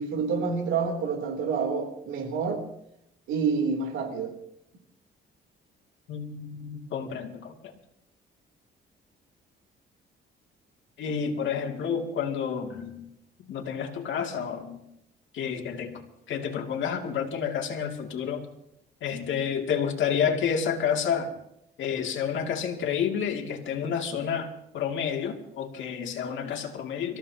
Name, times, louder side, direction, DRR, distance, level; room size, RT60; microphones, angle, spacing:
voice 1, 0.0-2.6 3.3-4.3, right 5 dB, 90° right, 3 dB, 3.4 m, -28 dB
voice 2, 6.1-7.7 11.0-13.0 13.4-14.8 15.3-18.5 19.0-21.3 21.8-24.5 24.7-27.2, left 7 dB, 75° left, 2 dB, 2.7 m, -30 dB
25.5 x 15.0 x 2.9 m, 0.80 s
cardioid pair, 90°, 20 cm